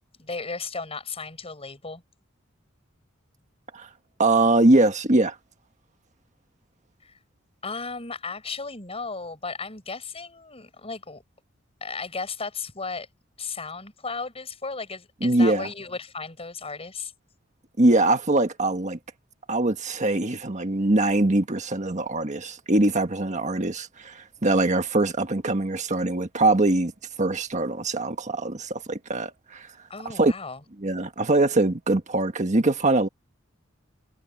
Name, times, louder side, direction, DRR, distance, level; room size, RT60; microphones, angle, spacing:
voice 1, 0.2-2.0 7.0-7.1 7.6-11.2 11.8-13.1 13.4-17.1 29.9-30.6, left 4 dB, 30° left, 6.7 m, -35 dB
voice 2, 4.2-5.3 15.2-15.7 17.8-19.0 19.5-26.9 27.2-29.7 30.0-30.3 30.8-33.1, right 2 dB, 40° right, 1.5 m, -22 dB
head